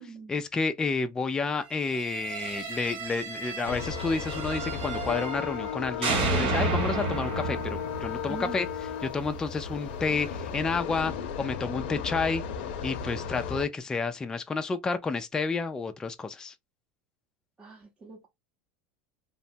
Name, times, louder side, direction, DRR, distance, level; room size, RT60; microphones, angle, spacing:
voice 1, 0.3-8.7 9.0-11.1 11.4-12.4 12.8-16.5, left 4 dB, 10° left, 0.3 m, -30 dB
sound 1, 1.9-5.7 6.0-9.0, right 3 dB, 85° right, 1.5 m, -32 dB
sound 2, 3.7-13.6, left 7 dB, 80° left, 0.6 m, -35 dB
voice 2, 17.6-18.3, right 4 dB, 15° right, 0.7 m, -42 dB
2.9 x 2.2 x 2.6 m
supercardioid pair, 140°, 6 cm